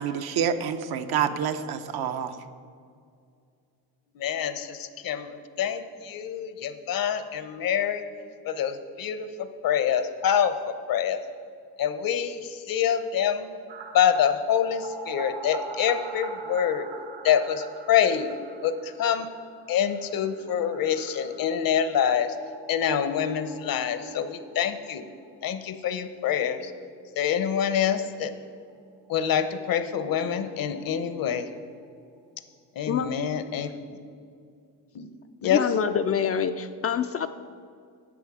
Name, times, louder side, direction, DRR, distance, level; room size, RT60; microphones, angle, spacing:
voice 1, 0.0-2.4, right 8 dB, 65° right, 8 dB, 0.7 m, -27 dB
voice 2, 4.2-5.3 5.6-8.0 8.4-9.3 9.6-11.2 11.8-13.5 13.9-16.9 17.2-18.3 18.6-19.3 19.7-22.3 22.7-25.0 25.4-26.7 27.2-28.3 29.1-31.5 32.8-33.7 34.9-35.1 35.4-35.6, left 8 dB, 55° left, 11 dB, 0.8 m, -26 dB
sound 1, 13.7-25.3 25.6-25.7 25.9-26.0 29.1-29.2 29.4-29.5 29.7-31.5 31.8-31.9, right 4 dB, 85° right, 1.2 m, -43 dB
voice 3, 35.5-37.3, left 7 dB, 35° left, 8 dB, 0.4 m, -26 dB
11.0 x 7.0 x 4.8 m, 2.3 s
cardioid pair, 90°, 41 cm